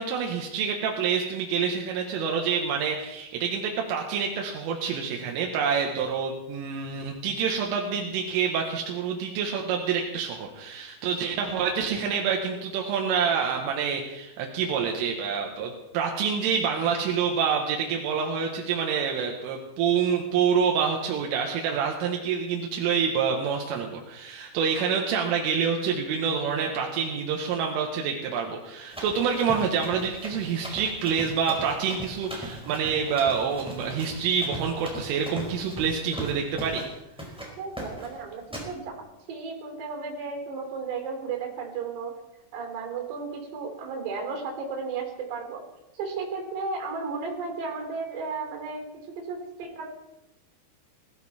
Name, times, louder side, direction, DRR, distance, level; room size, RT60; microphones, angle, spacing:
voice 1, 0.0-36.8, right 6 dB, 85° right, 1 dB, 4.0 m, -27 dB
Run, 28.9-36.9 37.2-37.5 37.8-38.1 38.5-38.7, equal, ahead, 3.8 m, -39 dB
voice 2, 37.6-42.2 42.5-45.6 45.9-49.9, right 4 dB, 60° right, 2 dB, 5.4 m, -34 dB
20.5 x 14.5 x 4.3 m, 0.91 s
omnidirectional pair, 5.6 m